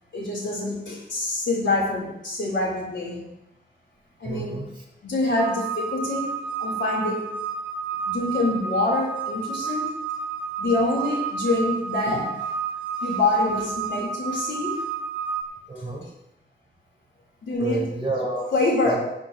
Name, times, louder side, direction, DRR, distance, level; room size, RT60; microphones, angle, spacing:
voice 1, 0.1-3.3 4.2-4.6 5.0-7.3 8.1-9.9 10.6-12.4 13.0-14.8 17.4-17.9 18.5-19.0, left 2 dB, 75° left, -3 dB, 4.0 m, -25 dB
voice 2, 4.2-4.7 15.7-16.0 17.6-18.5 18.8-19.0, right 2 dB, 25° right, -3 dB, 4.5 m, -29 dB
sound 1, 5.4-15.4, right 6 dB, 55° right, 2.4 m, -31 dB
18.0 x 9.1 x 3.1 m, 0.87 s
wide cardioid pair, 120°, 19 cm